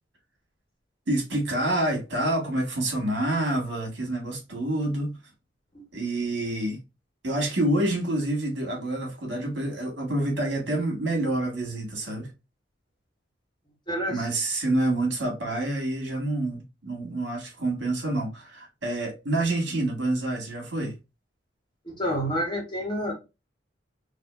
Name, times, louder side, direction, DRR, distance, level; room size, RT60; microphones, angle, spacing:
voice 1, 1.1-5.2 5.9-6.8 7.2-12.3 14.1-20.9, right 1 dB, 70° right, 1.6 m, -27 dB
voice 2, 13.9-14.3 21.8-23.1, equal, 25° left, 1.2 m, -29 dB
4.0 x 2.6 x 2.4 m
head